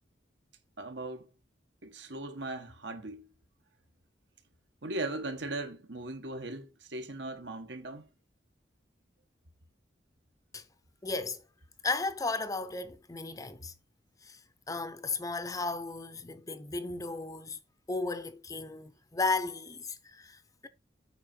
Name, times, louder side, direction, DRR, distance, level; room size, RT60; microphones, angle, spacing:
voice 1, 0.8-1.3 1.8-3.3 4.8-8.1, right 2 dB, 70° right, 1.7 m, -38 dB
voice 2, 11.0-11.4 11.8-13.7 14.2-14.4 14.7-17.6 17.9-20.7, left 3 dB, 20° left, 0.7 m, -35 dB
8.5 x 5.9 x 4.3 m
head